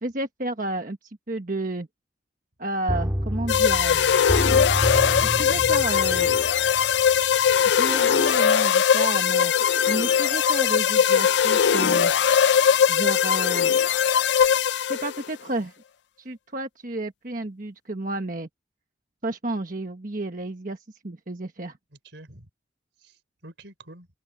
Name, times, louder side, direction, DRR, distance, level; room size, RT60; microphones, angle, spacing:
voice 1, 0.0-1.9 2.6-4.0 5.2-6.3 7.6-9.5 9.9-12.1 12.9-13.7 14.9-15.7 16.2-18.5 19.2-20.8 21.0-21.8, right 2 dB, 45° right, 1.3 m, -31 dB
sound 1, 2.9-7.6 7.9-8.0, equal, 15° right, 2.3 m, -29 dB
sound 2, 3.5-15.2, left 8 dB, 75° left, 0.4 m, -20 dB
voice 2, 7.5-7.8 21.9-22.5 23.0-24.1, right 1 dB, 80° right, 3.6 m, -48 dB
Crowd, 9.0-14.3, equal, 5° left, 4.7 m, -55 dB
open air
head